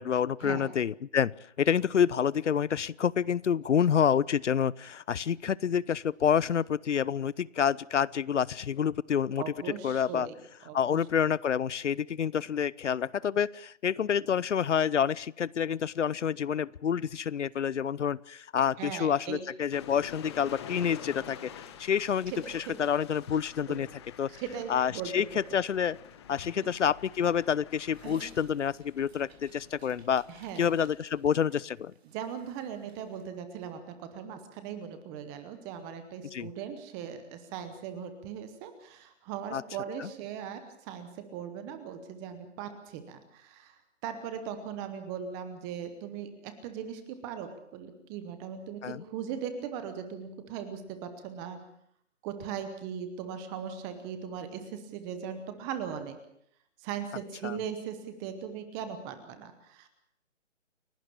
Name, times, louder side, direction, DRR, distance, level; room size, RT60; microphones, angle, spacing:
voice 1, 0.0-9.4 9.8-10.3 10.7-21.5 21.8-23.9 24.2-24.3 24.7-25.3 25.5-26.0 26.3-30.2 30.6-31.9 36.3-36.5 39.5-39.6 40.0-40.1 48.8-49.0 57.4-57.6, left 8 dB, 70° left, 23 dB, 0.8 m, -28 dB
voice 2, 9.4-10.4 10.7-11.0 18.8-19.4 22.3-22.4 22.7-22.8 23.7-23.9 24.4-25.1 26.5-26.7 30.3-30.7 32.0-43.7 44.0-51.6 52.2-56.2 56.8-59.9, right 8 dB, 10° right, 9 dB, 0.9 m, -39 dB
sound 1, 19.7-31.4, left 8 dB, 20° left, 1.5 m, -48 dB
Dog, 27.9-33.2, right 4 dB, 55° right, 3.9 m, -55 dB
29.0 x 12.0 x 8.6 m, 0.71 s
hypercardioid pair, 165°, 37 cm